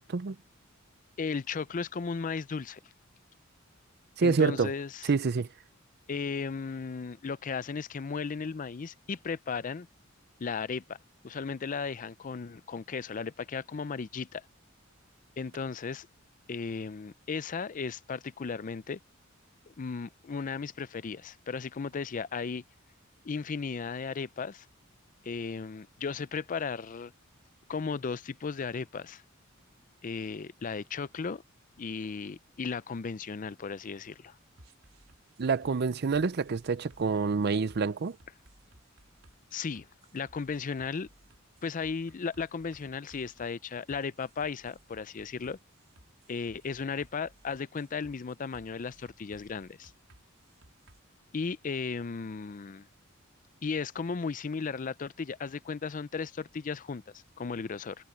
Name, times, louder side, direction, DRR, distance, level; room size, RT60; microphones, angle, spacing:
voice 1, 1.2-2.8 4.2-5.1 6.1-9.9 10.4-11.0 11.2-14.4 15.4-16.1 16.5-19.0 19.7-22.6 23.2-24.7 25.2-27.1 27.7-29.2 30.0-31.4 31.8-34.4 39.5-39.9 40.1-41.1 41.6-45.6 46.3-49.9 51.3-52.9 53.6-57.0 57.4-58.0, left 5 dB, 40° left, 0.5 m, -35 dB
voice 2, 4.2-4.7 5.1-5.5 35.4-38.2, right 4 dB, 50° right, 0.5 m, -27 dB
sound 1, 34.6-51.0, right 1 dB, 85° right, 4.2 m, -60 dB
head